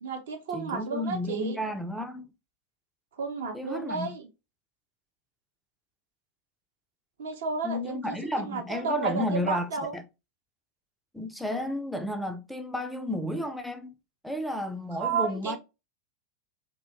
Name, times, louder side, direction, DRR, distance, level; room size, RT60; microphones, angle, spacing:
voice 1, 0.0-1.6 3.2-4.3 7.2-8.2 8.4-9.9 15.0-15.6, right 5 dB, 60° right, 0.6 m, -32 dB
voice 2, 0.5-2.3 3.5-4.1 7.6-10.0 11.1-14.0 14.2-15.6, left 1 dB, ahead, 0.3 m, -32 dB
2.7 x 2.1 x 2.4 m
figure-of-eight pair, 90°, 0 cm